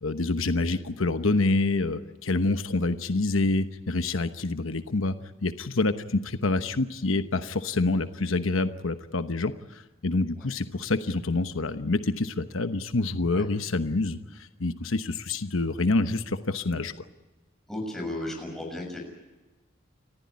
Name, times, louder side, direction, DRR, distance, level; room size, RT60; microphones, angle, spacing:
voice 1, 0.0-5.1 5.4-16.9, left 2 dB, 85° left, 9 dB, 1.0 m, -27 dB
voice 2, 17.7-19.0, left 1 dB, ahead, 0 dB, 6.9 m, -34 dB
30.0 x 14.5 x 9.6 m, 1.1 s
head